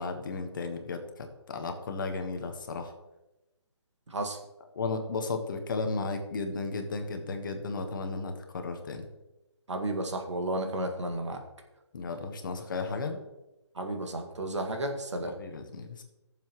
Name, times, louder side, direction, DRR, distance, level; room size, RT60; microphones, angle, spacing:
voice 1, 0.0-2.9 4.7-9.0 11.9-13.2 15.3-16.0, left 3 dB, 45° left, 5 dB, 1.4 m, -34 dB
voice 2, 9.7-11.4 13.8-15.3, right 1 dB, 85° right, 4 dB, 1.9 m, -32 dB
16.5 x 7.2 x 3.1 m, 1.0 s
hypercardioid pair, 160°, 15 cm